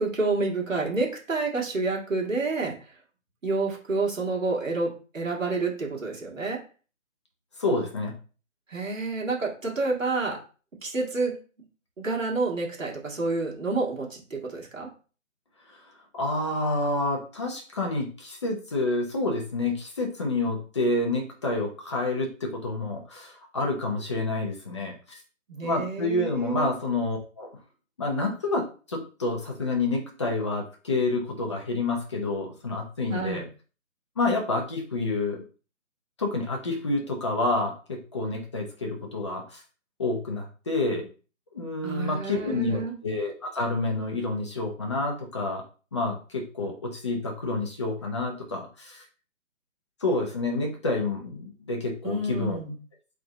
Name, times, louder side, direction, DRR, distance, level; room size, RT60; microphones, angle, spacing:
voice 1, 0.0-2.9 3.4-6.6 8.7-10.4 10.8-11.4 12.0-14.9 25.5-26.7 33.1-33.4 41.8-42.9 52.0-52.8, right 3 dB, 70° right, -1 dB, 2.1 m, -29 dB
voice 2, 7.6-8.1 16.1-25.2 25.6-27.5 28.0-33.4 34.2-35.4 36.2-39.6 40.0-41.1 41.5-45.6 45.9-49.0 50.0-52.6, left 2 dB, 20° left, 1 dB, 0.7 m, -28 dB
3.8 x 3.3 x 4.0 m, 0.36 s
figure-of-eight pair, 155°, 40 cm